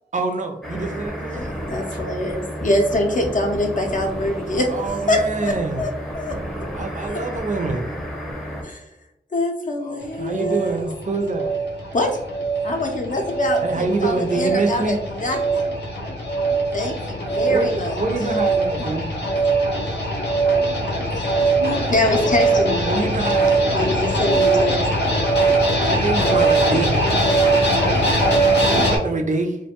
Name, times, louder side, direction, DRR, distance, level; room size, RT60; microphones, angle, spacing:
voice 1, 0.1-1.5 4.7-5.8 6.7-7.9 10.2-11.5 13.6-15.0 17.5-19.1 22.8-23.9 25.9-26.9 28.7-29.6, right 3 dB, 45° right, 4 dB, 0.4 m, -25 dB
sound 1, 0.6-8.6, equal, 5° left, 0.5 m, -31 dB
voice 2, 1.7-4.7 5.1-6.4 7.0-7.2 8.6-8.8 9.3-10.8 11.9-12.2 12.6-15.6 16.7-18.3 19.4-19.5 20.6-20.7 21.1-21.3 21.9-22.9 23.7-24.8, left 1 dB, 50° left, 2 dB, 0.5 m, -24 dB
sound 2, 10.0-29.0, right 2 dB, 90° left, 0.7 m, -21 dB
voice 3, 21.3-22.4 23.4-25.0 25.5-29.1, right 1 dB, 80° right, -1 dB, 0.8 m, -36 dB
2.4 x 2.2 x 2.8 m, 0.86 s
wide cardioid pair, 65°, 17 cm